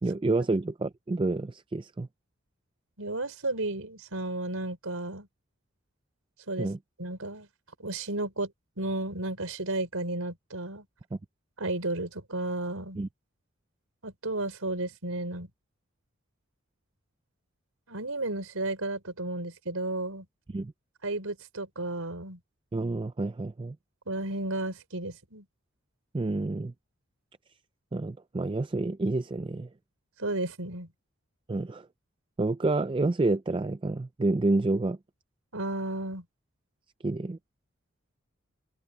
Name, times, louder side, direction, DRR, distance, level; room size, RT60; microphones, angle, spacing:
voice 1, 0.0-2.1 6.6-6.8 11.1-11.2 13.0-13.1 20.5-20.7 22.7-23.8 26.1-26.7 27.9-29.7 31.5-31.9 32.4-35.0 37.0-37.4, right 2 dB, 25° right, 0.4 m, -28 dB
voice 2, 3.0-5.3 6.5-6.7 7.0-7.5 7.8-8.5 8.8-10.8 11.6-13.0 14.0-15.5 17.9-20.3 21.0-22.4 24.1-25.4 30.2-30.9 35.5-36.2, right 2 dB, 80° right, 4.5 m, -33 dB
head